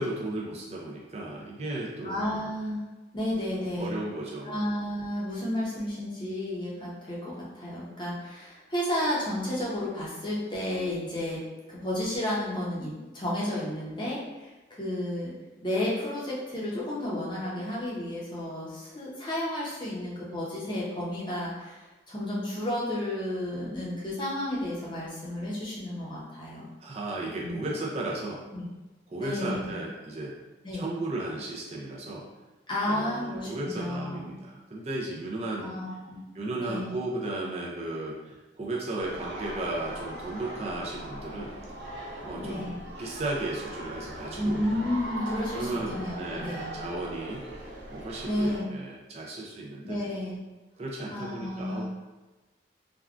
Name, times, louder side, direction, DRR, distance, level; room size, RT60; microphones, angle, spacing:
voice 1, 0.0-2.5 3.8-4.6 26.8-28.4 29.1-30.3 30.7-32.2 32.8-35.7 36.3-41.5 42.2-44.6 45.5-47.4 47.9-50.0 50.8-51.9, right 2 dB, 35° right, -3 dB, 0.4 m, -35 dB
voice 2, 2.0-2.8 3.1-3.9 4.4-11.4 11.7-14.5 14.8-15.3 15.6-26.7 27.4-27.7 28.5-28.7 29.2-29.7 30.6-30.8 32.7-34.3 35.6-36.2 36.6-36.9 42.4-42.7 44.4-46.7 48.2-48.7 49.8-50.4 51.1-51.9, left 1 dB, 25° left, -6 dB, 0.7 m, -32 dB
sound 1, 39.0-48.6, right 1 dB, 75° right, 0.7 m, -40 dB
3.5 x 2.2 x 2.4 m, 1.1 s
head